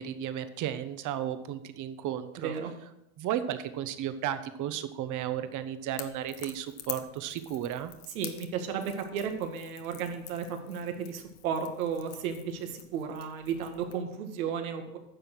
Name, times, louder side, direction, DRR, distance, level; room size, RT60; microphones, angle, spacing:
voice 1, 0.0-2.5 3.2-7.9, right 10 dB, 45° right, 11 dB, 1.1 m, -34 dB
voice 2, 2.4-2.7 8.1-15.0, right 7 dB, 85° right, 5 dB, 1.9 m, -34 dB
Crackle / Crack, 5.9-14.0, left 12 dB, 60° left, 1.2 m, -47 dB
10.0 x 6.7 x 6.1 m, 0.86 s
supercardioid pair, 110°, 41 cm